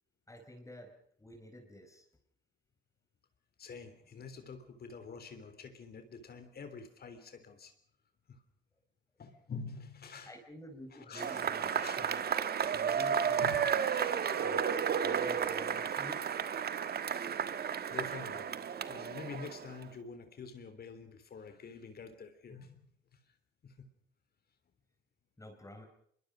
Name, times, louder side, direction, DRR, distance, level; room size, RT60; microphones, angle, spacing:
voice 1, 0.3-0.9 1.2-2.1 10.3-12.2 12.8-13.4 14.3-14.7 15.0-16.3 25.4-25.9, equal, 15° left, 4 dB, 4.5 m, -50 dB
voice 2, 3.6-7.7 8.3-8.4 9.2-10.3 10.9-12.0 12.9-13.1 13.4-14.2 17.9-18.5 18.8-22.9 23.6-23.9, left 5 dB, 50° left, 9 dB, 3.5 m, -47 dB
Cheering / Applause / Crowd, 11.1-19.8, right 7 dB, 50° right, 1.5 m, -33 dB
25.5 x 23.0 x 5.2 m, 0.65 s
cardioid pair, 90°, 20 cm